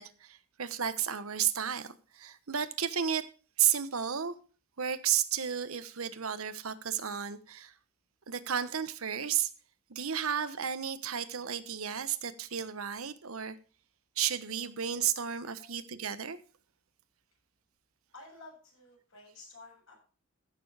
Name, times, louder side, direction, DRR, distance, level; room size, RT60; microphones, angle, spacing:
voice 1, 0.0-3.3 3.6-4.3 4.8-7.7 8.3-9.5 9.9-13.6 14.2-16.4, right 9 dB, 75° right, 1.1 m, -32 dB
voice 2, 18.1-20.0, left 3 dB, 65° left, 7.5 m, -52 dB
15.0 x 6.9 x 4.9 m
head